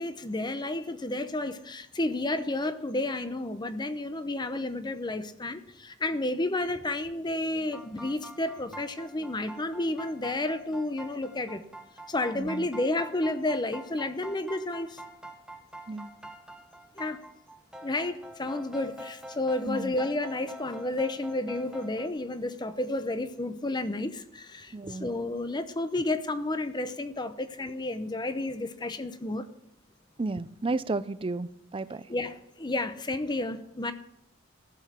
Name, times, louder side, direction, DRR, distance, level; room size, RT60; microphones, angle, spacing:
voice 1, 0.0-11.6 12.1-15.0 17.0-17.2 17.8-29.5 32.1-33.9, left 2 dB, 20° left, 10 dB, 0.8 m, -31 dB
sound 1, 7.7-22.1, right 1 dB, 5° right, 0.9 m, -45 dB
voice 2, 24.7-25.1 30.2-32.0, right 3 dB, 25° right, 15 dB, 0.5 m, -32 dB
15.5 x 7.0 x 6.0 m, 0.76 s
head